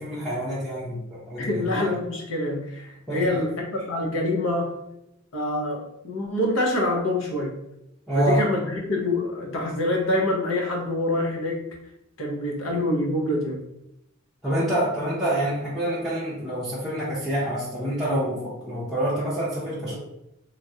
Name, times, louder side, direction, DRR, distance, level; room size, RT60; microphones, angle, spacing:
voice 1, 0.0-1.7 3.1-3.4 8.1-8.4 14.4-19.9, right 1 dB, ahead, -11 dB, 0.6 m, -27 dB
voice 2, 1.4-4.7 5.3-7.5 8.1-11.7 12.2-13.6, left 1 dB, 70° left, -1 dB, 0.7 m, -26 dB
3.1 x 2.4 x 2.7 m, 0.84 s
head